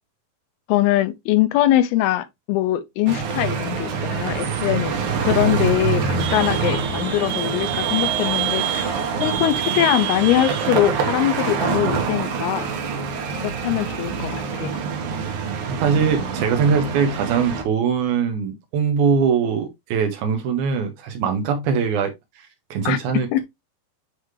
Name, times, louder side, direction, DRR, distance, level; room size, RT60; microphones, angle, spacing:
voice 1, 0.7-5.0 5.2-8.9 9.2-12.7 13.4-14.7 22.9-23.0 23.3-23.4, left 14 dB, 80° left, 2.4 m, -22 dB
sound 1, 3.1-17.6, right 6 dB, 65° right, 2.2 m, -25 dB
voice 2, 15.7-23.4, right 6 dB, 85° right, 1.7 m, -22 dB
9.6 x 3.3 x 3.1 m
omnidirectional pair, 4.8 m